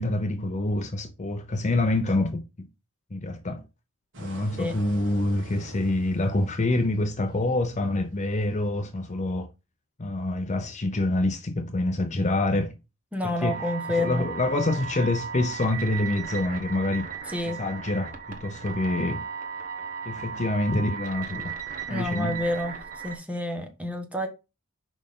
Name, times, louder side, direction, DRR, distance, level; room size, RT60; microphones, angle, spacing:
voice 1, 0.0-2.4 3.1-3.6 4.2-9.5 10.0-12.7 13.2-13.6 14.0-17.1 17.5-19.2 20.1-21.5 21.9-22.4, left 2 dB, 35° left, 0.6 m, -26 dB
sound 1, 4.1-9.1, right 2 dB, 60° right, 1.8 m, -47 dB
voice 2, 13.1-14.3 17.3-17.6 21.9-22.7 23.0-24.3, left 1 dB, 5° right, 1.3 m, -29 dB
sound 2, 13.5-23.2, right 6 dB, 40° right, 1.3 m, -36 dB
6.3 x 5.1 x 3.6 m
head